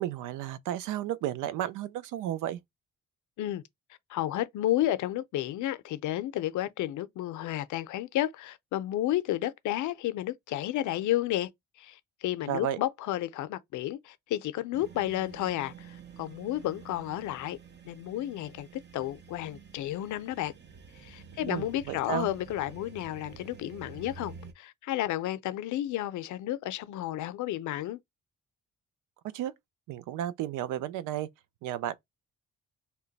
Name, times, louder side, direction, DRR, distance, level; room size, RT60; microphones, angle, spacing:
voice 1, 0.0-2.6 12.5-12.8 21.4-22.3 29.2-29.5 29.9-31.3 31.6-32.0, right 11 dB, 90° right, 0.5 m, -33 dB
voice 2, 4.1-11.5 11.8-17.6 17.8-18.7 18.9-20.5 21.0-28.0, left 13 dB, 75° left, 0.5 m, -32 dB
sound 1, 14.7-24.5, right 6 dB, 35° right, 0.7 m, -49 dB
2.9 x 2.2 x 3.9 m
cardioid pair, 90°, 30 cm